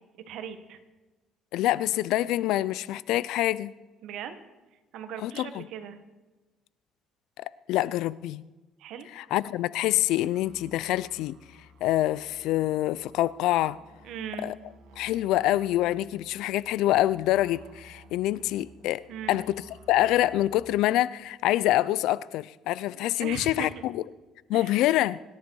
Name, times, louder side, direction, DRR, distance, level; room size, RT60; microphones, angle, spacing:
voice 1, 0.3-0.8 4.0-4.4 4.9-6.0 8.8-9.1 14.0-14.5 19.1-19.4 22.9-23.8 24.5-24.8, right 8 dB, 65° right, 1.3 m, -39 dB
voice 2, 1.5-3.7 5.2-5.6 7.4-8.4 9.2-11.4 11.8-13.8 14.4-14.5 15.0-19.6 19.9-24.0 24.5-25.2, left 14 dB, 75° left, 0.4 m, -26 dB
sound 1, 10.2-20.6, right 1 dB, 85° right, 2.0 m, -54 dB
24.5 x 10.5 x 4.6 m
cardioid pair, 150°, 0 cm